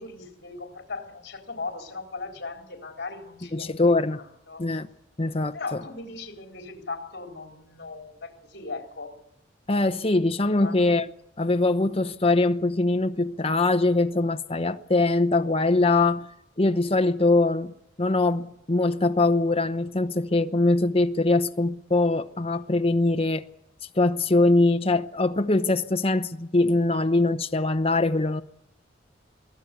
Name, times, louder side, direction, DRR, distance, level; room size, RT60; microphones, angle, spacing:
voice 1, 0.0-3.7 4.2-4.6 5.5-9.2 10.4-10.8, left 3 dB, 60° left, 4.0 m, -38 dB
voice 2, 3.5-4.2 4.6-4.9 5.2-5.8 9.7-11.1 11.4-16.3 16.6-23.5 24.0-28.4, left 2 dB, 30° left, 0.9 m, -22 dB
23.5 x 16.0 x 8.4 m
head